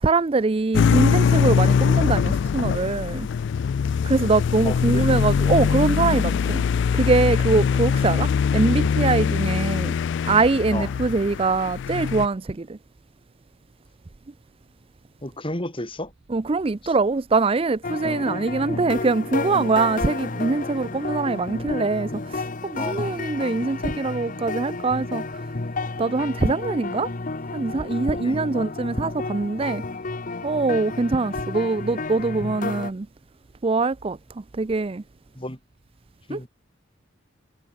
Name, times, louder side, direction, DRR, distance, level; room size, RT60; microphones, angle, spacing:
voice 1, 0.0-3.3 4.0-6.6 6.9-9.9 10.2-12.8 16.3-25.5 26.0-27.1 27.5-29.8 30.4-33.1 33.6-34.2 34.5-35.0 36.3-36.4, right 3 dB, 30° right, 0.4 m, -23 dB
sound 1, 0.7-12.3, left 6 dB, 60° left, 0.3 m, -22 dB
voice 2, 4.6-5.1 10.7-11.3 15.2-16.1 16.8-16.9 22.8-23.1 28.2-28.5 35.3-35.6 36.3-36.5, left 1 dB, 25° left, 4.8 m, -32 dB
sound 2, 17.8-32.9, left 3 dB, 40° left, 0.9 m, -31 dB
head